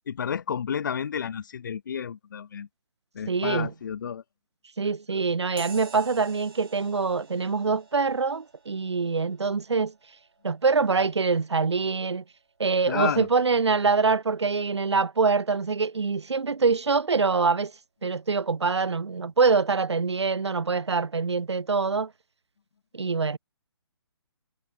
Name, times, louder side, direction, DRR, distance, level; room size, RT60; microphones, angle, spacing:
voice 1, 0.1-2.7 3.1-4.2 12.9-13.3, left 7 dB, 45° left, 0.7 m, -31 dB
voice 2, 3.3-3.7 4.8-9.9 10.4-12.2 12.6-17.7 18.0-22.1 22.9-23.4, right 4 dB, 75° right, 0.4 m, -24 dB
sound 1, 5.6-13.5, right 5 dB, 55° right, 4.9 m, -50 dB
figure-of-eight pair, 140°, 14 cm